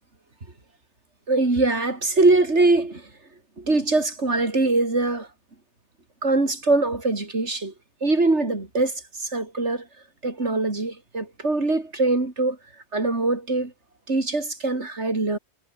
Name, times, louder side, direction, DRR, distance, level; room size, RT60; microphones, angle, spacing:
voice 1, 1.3-3.1 3.6-5.3 6.2-7.7 8.0-9.9 10.2-12.6 12.9-13.7 14.1-15.4, right 2 dB, 85° right, 4.1 m, -22 dB
omnidirectional pair, 1.1 m